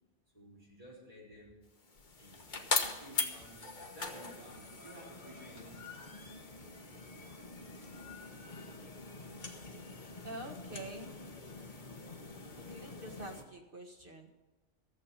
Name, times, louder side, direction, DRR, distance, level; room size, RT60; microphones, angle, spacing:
voice 1, 0.3-1.6 2.2-2.4 2.8-6.3 7.2-8.1, equal, 30° right, -5 dB, 4.2 m, -55 dB
sound 1, 1.8-13.4, left 3 dB, 40° left, 1.4 m, -41 dB
voice 2, 10.2-11.2 12.6-14.4, right 1 dB, 45° right, 3 dB, 1.8 m, -46 dB
14.0 x 7.7 x 8.3 m, 1.1 s
omnidirectional pair, 1.3 m